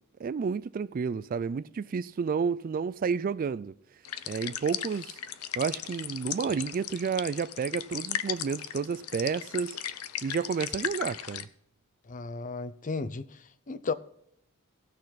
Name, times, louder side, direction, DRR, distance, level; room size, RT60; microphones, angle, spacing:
voice 1, 0.2-3.8 4.3-5.2 5.6-9.8 10.2-11.5, right 6 dB, 40° right, 0.3 m, -31 dB
sound 1, 4.0-11.4, left 10 dB, 80° left, 0.7 m, -37 dB
voice 2, 12.1-13.9, left 4 dB, 35° left, 0.6 m, -34 dB
17.5 x 6.5 x 4.0 m
head